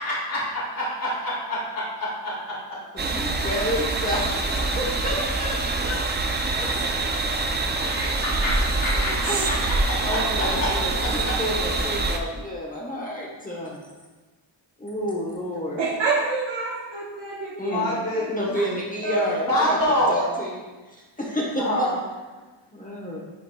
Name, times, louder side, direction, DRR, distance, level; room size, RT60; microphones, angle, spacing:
voice 1, 0.0-2.3 4.7-4.8 7.8-10.7 11.2-11.3 17.7-18.5 19.5-20.3 21.6-22.0, left 1 dB, 50° left, -6 dB, 1.9 m, -26 dB
voice 2, 2.9-6.7 8.9-9.5 10.0-13.8 14.8-15.8 17.6-17.9 18.3-20.6 20.9-21.9 22.7-23.2, left 1 dB, 20° left, -4 dB, 0.9 m, -30 dB
sound 1, 3.0-12.2, right 3 dB, 25° right, 0.4 m, -25 dB
sound 2, 8.1-10.7, right 6 dB, 85° right, 0.8 m, -41 dB
voice 3, 15.8-18.3 19.0-19.3, right 4 dB, 70° right, -6 dB, 1.1 m, -27 dB
10.5 x 4.6 x 2.2 m, 1.2 s
wide cardioid pair, 170°, 45 cm